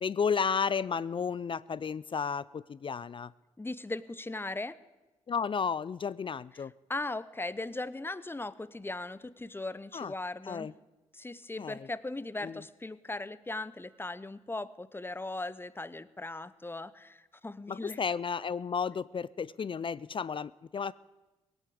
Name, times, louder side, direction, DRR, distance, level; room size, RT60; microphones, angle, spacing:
voice 1, 0.0-3.3 5.3-6.7 9.9-10.1 10.5-10.7 11.6-11.9 12.4-12.6 17.7-20.9, left 6 dB, 40° left, 19 dB, 0.4 m, -33 dB
voice 2, 3.6-4.8 6.6-6.7 6.9-10.7 11.1-18.0, left 2 dB, 15° left, 17 dB, 0.8 m, -38 dB
18.0 x 8.1 x 8.6 m, 1.1 s
supercardioid pair, 50°, 13 cm